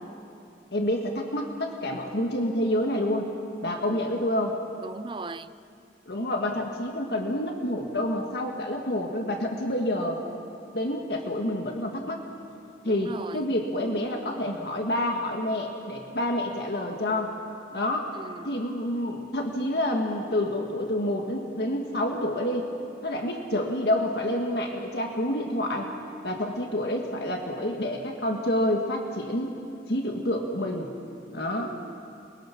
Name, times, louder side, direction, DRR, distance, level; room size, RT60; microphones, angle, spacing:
voice 1, 0.7-3.3 3.6-4.6 6.1-10.2 10.7-12.2 12.8-17.3 17.7-18.1 18.5-22.7 23.0-25.9 26.2-29.5 29.9-30.9 31.3-31.7, left 1 dB, 65° left, 1.8 m, -28 dB
voice 2, 4.8-5.5 12.9-13.5 18.1-18.6 31.6-32.0, right 3 dB, 25° right, 0.4 m, -39 dB
29.0 x 21.0 x 5.9 m
head